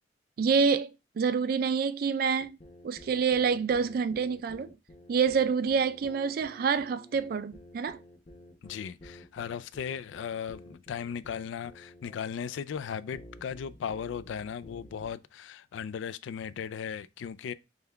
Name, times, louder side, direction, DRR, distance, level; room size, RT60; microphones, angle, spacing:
voice 1, 0.4-2.6 2.8-4.7 5.1-8.0, right 6 dB, 50° right, 0.3 m, -27 dB
sound 1, 2.4-15.1, left 1 dB, 35° left, 1.0 m, -51 dB
voice 2, 8.6-17.5, left 7 dB, 85° left, 0.3 m, -37 dB
5.4 x 2.3 x 3.3 m
head